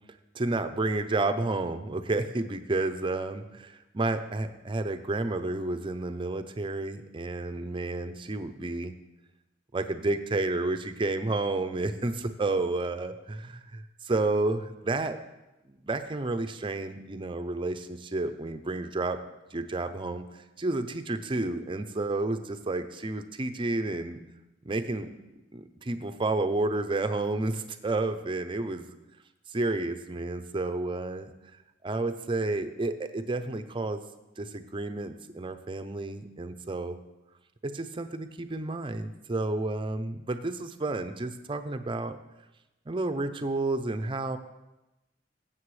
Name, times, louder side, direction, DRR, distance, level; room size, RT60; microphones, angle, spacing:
voice 1, 0.3-8.9 9.7-15.2 15.6-19.2 19.5-24.2 24.6-25.1 25.5-29.0 29.5-31.3 31.8-34.0 34.4-37.0 37.6-42.2 42.9-44.4, right 2 dB, 30° right, 9 dB, 0.6 m, -31 dB
16.0 x 7.6 x 3.2 m, 0.99 s
head